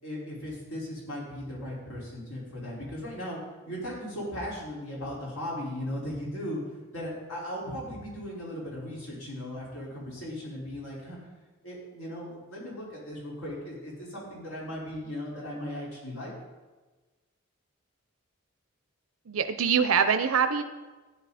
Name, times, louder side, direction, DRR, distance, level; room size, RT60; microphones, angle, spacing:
voice 1, 0.0-3.4 3.7-6.6 6.9-11.3 11.6-16.3, left 1 dB, 85° left, -5 dB, 4.9 m, -37 dB
voice 2, 19.3-20.6, right 6 dB, 85° right, 9 dB, 0.6 m, -24 dB
14.5 x 10.0 x 4.2 m, 1.2 s
head